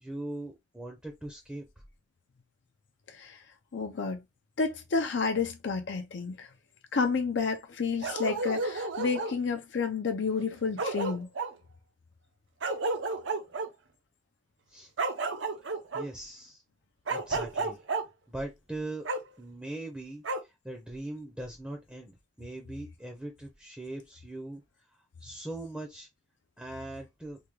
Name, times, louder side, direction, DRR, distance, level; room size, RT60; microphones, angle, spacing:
voice 1, 0.0-1.6 14.7-14.9 15.9-16.6 17.1-17.8 18.3-19.1 19.4-24.6 25.2-26.1 26.6-27.4, right 2 dB, 5° right, 0.6 m, -40 dB
voice 2, 3.1-3.4 3.7-4.2 4.6-6.5 6.9-11.3, left 4 dB, 65° left, 0.5 m, -30 dB
Bark, 8.0-9.4 10.4-10.5 10.8-11.5 12.6-13.7 15.0-16.0 17.1-18.0 19.0-19.2 20.2-20.4, right 3 dB, 70° right, 0.7 m, -31 dB
3.4 x 2.2 x 3.1 m
head